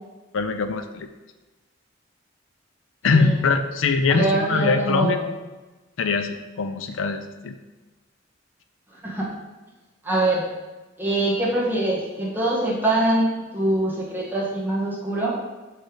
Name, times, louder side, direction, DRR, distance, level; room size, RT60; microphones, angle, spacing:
voice 1, 0.3-1.1 3.0-5.2 6.0-7.5, left 4 dB, 90° left, 8 dB, 0.5 m, -22 dB
voice 2, 3.1-3.4 4.1-5.3 9.0-9.3 10.0-10.5 11.0-15.4, right 1 dB, 10° right, -5 dB, 1.3 m, -23 dB
6.6 x 3.2 x 4.9 m, 1.2 s
head